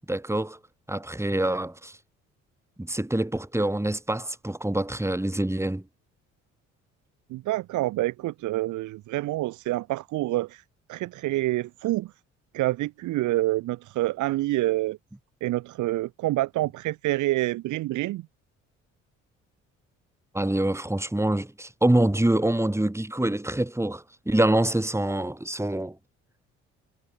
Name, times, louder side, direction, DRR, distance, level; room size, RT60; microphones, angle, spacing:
voice 1, 0.1-0.6 0.9-1.9 2.8-5.8 20.3-26.0, right 1 dB, 5° right, 4.2 m, -25 dB
voice 2, 7.3-10.6 10.9-12.1 12.5-15.0 15.4-18.3, right 17 dB, 50° right, 0.7 m, -27 dB
hypercardioid pair, 50°, 38 cm